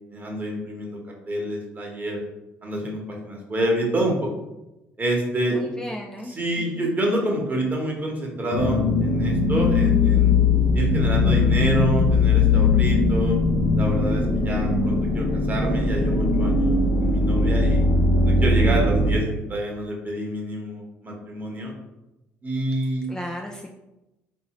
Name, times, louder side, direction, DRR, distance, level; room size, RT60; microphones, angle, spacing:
voice 1, 0.1-1.0 1.3-2.2 2.6-4.3 5.0-5.7 6.2-10.3 10.7-13.4 13.8-17.8 18.2-21.7 22.4-23.1, right 1 dB, 30° right, -1 dB, 1.2 m, -27 dB
voice 2, 5.5-6.3 6.7-6.9 23.1-23.7, left 1 dB, 10° left, 0 dB, 0.4 m, -34 dB
sound 1, 8.5-19.2, left 3 dB, 65° left, 0.7 m, -20 dB
3.7 x 2.7 x 3.0 m, 0.98 s
hypercardioid pair, 65°, 6 cm